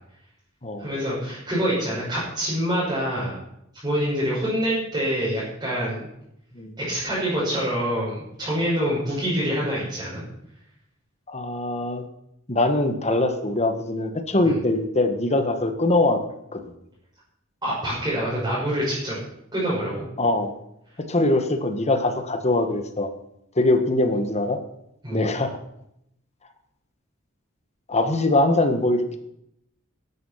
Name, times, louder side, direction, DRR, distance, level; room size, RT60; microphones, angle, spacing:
voice 1, 0.8-3.4 3.8-6.1 6.8-10.2 14.4-14.6 17.6-19.2 19.5-20.0 25.0-25.3, equal, 20° right, -9 dB, 5.9 m, -26 dB
voice 2, 11.3-12.0 12.5-16.2 16.5-16.7 20.2-20.6 21.0-23.1 23.5-24.6 25.1-25.6 27.9-29.2, left 2 dB, 35° left, 8 dB, 1.5 m, -22 dB
13.0 x 11.5 x 5.8 m, 0.78 s
head